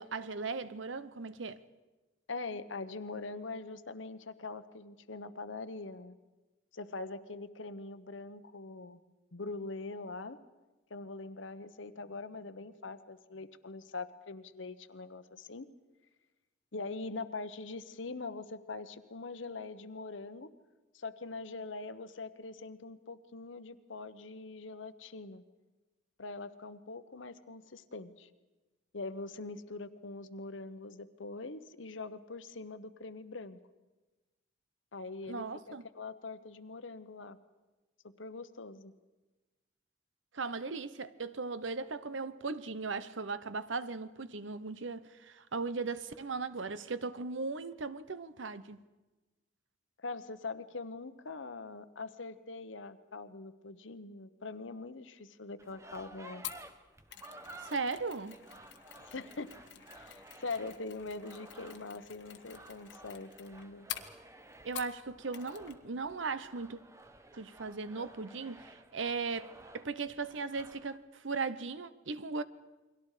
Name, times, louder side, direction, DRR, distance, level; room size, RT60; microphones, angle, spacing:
voice 1, 0.0-1.6 35.3-35.8 40.3-48.8 57.6-58.4 64.6-66.8 67.3-72.4, right 4 dB, 85° right, 0.9 m, -38 dB
voice 2, 2.3-6.2 6.7-9.0 9.3-10.4 10.9-15.7 16.7-20.5 20.9-25.4 26.2-28.3 28.9-33.6 34.9-37.4 38.2-38.9 50.0-56.4 59.0-59.5 60.0-63.9, left 3 dB, 90° left, 1.1 m, -43 dB
sound 1, 55.6-71.0, right 2 dB, 15° right, 1.0 m, -54 dB
Mechanisms, 56.4-65.0 65.3-65.8 66.0-66.2, left 11 dB, 75° left, 1.5 m, -48 dB
29.5 x 22.5 x 5.0 m
head